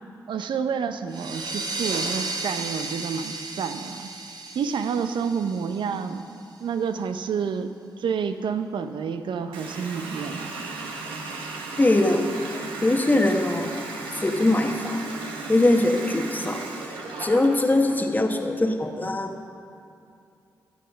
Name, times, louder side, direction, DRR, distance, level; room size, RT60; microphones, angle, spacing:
voice 1, 0.3-4.1 4.5-6.2 6.6-7.7 8.0-10.6, right 6 dB, 75° right, 9 dB, 0.6 m, -29 dB
sound 1, 1.1-6.4, right 3 dB, 55° right, 1.2 m, -34 dB
Water tap faucet, 9.5-18.0, right 3 dB, 90° right, 1.1 m, -35 dB
voice 2, 11.8-12.2 12.8-13.7 14.1-15.0 15.5-16.6 17.2-19.3, left 2 dB, 20° left, 3 dB, 1.1 m, -21 dB
14.5 x 6.5 x 5.6 m, 2.5 s
supercardioid pair, 45°, 8 cm